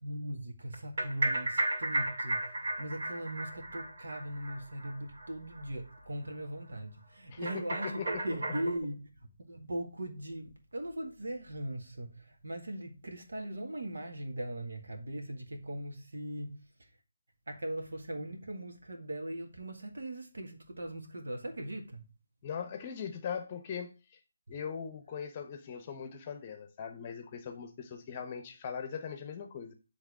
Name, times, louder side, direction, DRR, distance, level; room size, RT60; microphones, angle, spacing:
voice 1, 0.0-16.7 17.5-22.0, right 1 dB, 70° right, 1.8 m, -39 dB
sound 1, 0.7-5.3 5.5-5.6 5.9-6.0 6.3-6.4 7.5-8.8, right 1 dB, 55° right, 2.5 m, -34 dB
voice 2, 7.8-8.2 22.4-23.9 24.5-29.7, left 7 dB, 30° left, 0.9 m, -40 dB
8.1 x 3.6 x 4.7 m
figure-of-eight pair, 150°, 0 cm